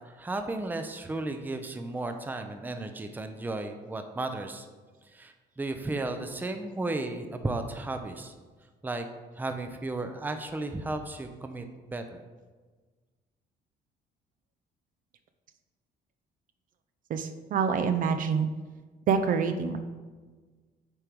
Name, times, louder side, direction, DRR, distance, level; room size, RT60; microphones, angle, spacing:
voice 1, 0.0-4.7 5.0-8.3 8.8-9.0 9.3-12.2, right 2 dB, 10° right, 6 dB, 0.6 m, -34 dB
voice 2, 17.1-18.5 19.1-19.8, right 6 dB, 55° right, 8 dB, 0.6 m, -26 dB
8.8 x 3.4 x 4.6 m, 1.4 s
cardioid pair, 110°, 17 cm